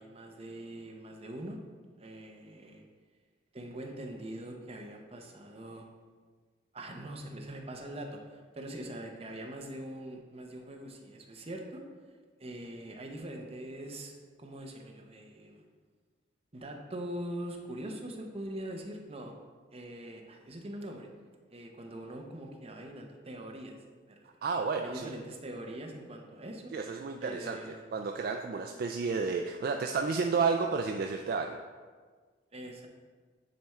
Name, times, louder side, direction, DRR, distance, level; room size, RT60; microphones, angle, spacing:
voice 1, 0.0-1.6 2.0-2.8 3.5-5.9 6.7-11.8 12.4-14.1 14.4-15.6 16.5-19.3 19.7-21.1 21.5-23.8 24.1-24.4 24.8-26.7 27.2-27.9 32.5-32.9, right 1 dB, 30° right, 2 dB, 0.8 m, -42 dB
voice 2, 24.4-25.1 26.7-31.6, right 4 dB, 50° right, 4 dB, 0.3 m, -31 dB
9.2 x 3.6 x 4.3 m, 1.5 s
head